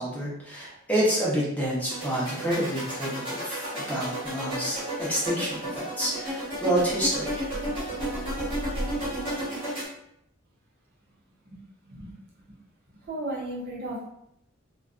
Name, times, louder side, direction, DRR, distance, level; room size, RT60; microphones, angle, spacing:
voice 1, 0.0-7.5, right 1 dB, 10° left, -7 dB, 0.8 m, -28 dB
sound 1, 1.9-9.9, equal, 25° right, 1.1 m, -32 dB
voice 2, 13.1-14.1, right 1 dB, 50° right, -5 dB, 0.6 m, -34 dB
2.5 x 2.2 x 2.4 m, 0.77 s
head